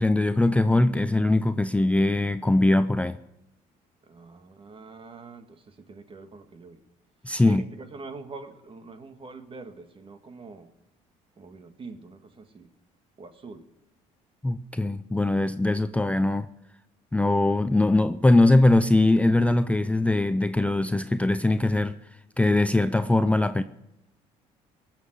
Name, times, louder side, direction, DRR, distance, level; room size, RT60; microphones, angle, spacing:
voice 1, 0.0-3.2 7.2-7.6 14.4-16.5 17.1-21.9 22.4-23.6, left 2 dB, 10° left, 11 dB, 0.6 m, -21 dB
voice 2, 4.1-6.8 7.4-10.7 11.4-12.7 13.2-13.6, right 3 dB, 35° right, 8 dB, 1.8 m, -44 dB
18.5 x 7.6 x 8.0 m, 0.94 s
supercardioid pair, 80°, 15 cm